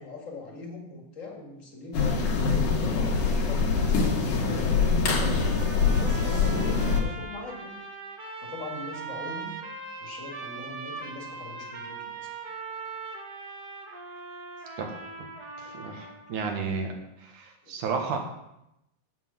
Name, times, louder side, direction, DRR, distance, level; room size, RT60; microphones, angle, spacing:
voice 1, 0.0-4.0 4.7-7.8 8.4-9.5 10.0-12.3 14.6-14.7 17.6-18.2, left 3 dB, 30° left, 1 dB, 1.6 m, -41 dB
sound 1, 1.9-7.0, left 4 dB, 75° left, 3.0 m, -24 dB
sound 2, 5.4-16.4, right 4 dB, 45° right, 1.3 m, -40 dB
voice 2, 15.6-16.9 17.2-18.2, right 5 dB, 80° right, 3 dB, 2.9 m, -32 dB
8.1 x 7.7 x 7.4 m, 0.85 s
omnidirectional pair, 3.6 m